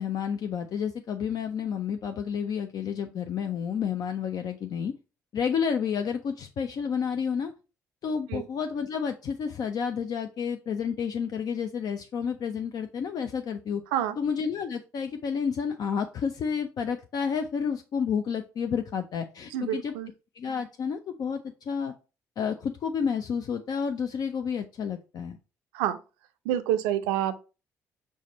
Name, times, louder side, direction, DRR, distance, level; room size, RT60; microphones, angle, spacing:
voice 1, 0.0-4.9 5.3-7.5 8.0-13.8 14.2-19.9 20.3-21.9 22.4-25.4, left 7 dB, 55° left, 0.4 m, -30 dB
voice 2, 19.5-20.1 25.7-26.0 26.5-27.4, right 11 dB, 80° right, 0.4 m, -27 dB
4.7 x 2.2 x 4.0 m
hypercardioid pair, 50°, 8 cm